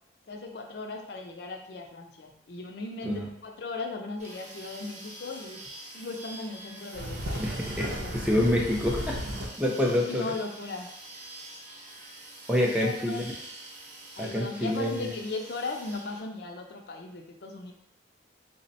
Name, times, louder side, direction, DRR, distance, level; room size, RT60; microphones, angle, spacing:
voice 1, 0.3-5.6 5.9-8.2 10.0-10.9 12.8-13.3 14.1-17.7, left 3 dB, 55° left, 3 dB, 0.4 m, -37 dB
sound 1, 4.2-16.2, right 1 dB, 35° right, 0.7 m, -45 dB
sound 2, 6.9-9.5, equal, 80° right, 0.7 m, -35 dB
voice 2, 7.4-9.2 9.6-10.2 12.5-13.2 14.2-15.1, left 1 dB, 5° right, -1 dB, 0.4 m, -27 dB
3.3 x 2.1 x 4.0 m, 0.75 s
head